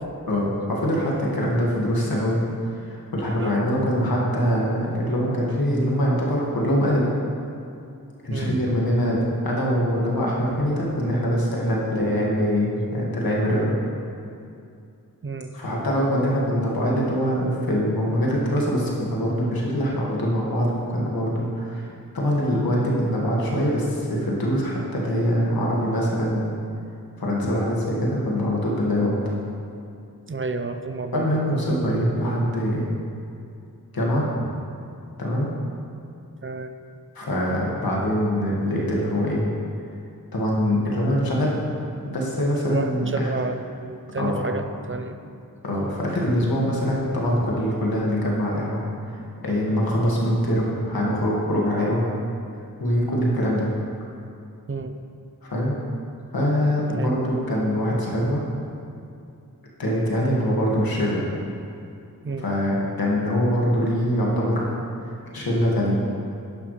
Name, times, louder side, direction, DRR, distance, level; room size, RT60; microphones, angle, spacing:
voice 1, 0.3-2.4 2.7-7.1 8.2-9.2 9.4-13.8 15.5-26.5 27.2-29.2 31.1-33.0 33.9-34.5 35.2-35.5 37.2-39.4 40.3-41.6 42.1-43.3 44.2-44.4 45.6-48.8 49.1-49.2 49.4-52.0 52.8-53.7 55.4-55.8 56.3-58.5 59.8-61.3 62.4-64.8 65.3-66.0, equal, 90° left, -4 dB, 2.1 m, -23 dB
voice 2, 15.2-15.5 30.3-31.4 36.4-36.7 42.7-45.2 54.7-55.0 57.0-57.1 62.2-62.5, right 3 dB, 35° right, 7 dB, 0.6 m, -30 dB
11.0 x 10.5 x 3.3 m, 2.5 s
wide cardioid pair, 90°, 35 cm